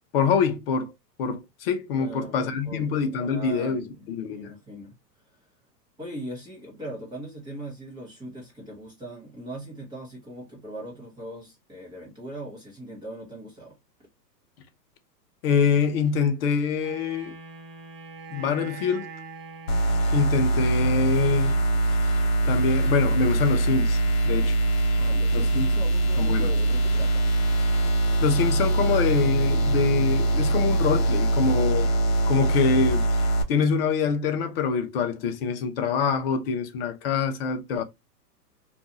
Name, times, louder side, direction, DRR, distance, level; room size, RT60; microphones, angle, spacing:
voice 1, 0.1-0.9 1.2-3.8 4.1-4.5 15.4-17.3 18.3-19.0 20.1-21.6 22.5-24.6 25.3-25.7 26.2-26.5 28.2-31.9 32.3-33.1 33.5-37.8, left 6 dB, 40° left, 0.5 m, -25 dB
voice 2, 1.9-2.9 3.2-4.9 6.0-13.8 25.0-27.2, right 1 dB, 10° right, 0.7 m, -40 dB
Wind instrument woodwind instrument, 16.8-20.8, right 4 dB, 40° right, 1.1 m, -42 dB
sound 1, 19.7-33.4, right 2 dB, 75° left, 1.0 m, -22 dB
2.6 x 2.3 x 2.7 m
hypercardioid pair, 140°, 49 cm